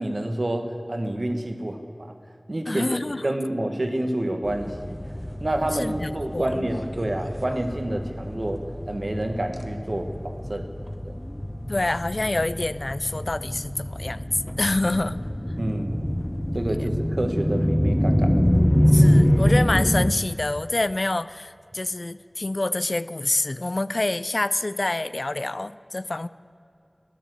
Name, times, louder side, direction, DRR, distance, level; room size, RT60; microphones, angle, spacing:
voice 1, 0.0-2.1 2.5-5.0 5.4-10.7 11.0-11.1 15.6-16.0 16.5-18.3, right 1 dB, 70° right, 5 dB, 1.4 m, -28 dB
voice 2, 2.7-3.2 5.7-6.7 11.7-14.3 14.6-15.2 16.8-16.9 18.9-26.3, left 2 dB, 75° left, 16 dB, 0.4 m, -27 dB
sound 1, 4.4-20.1, equal, 10° left, 0.6 m, -25 dB
sound 2, 5.2-5.3 6.6-8.4 9.5-9.6 10.5-10.7, equal, 5° right, 1.3 m, -44 dB
15.5 x 10.5 x 7.7 m, 2.7 s
wide cardioid pair, 40°, 0 cm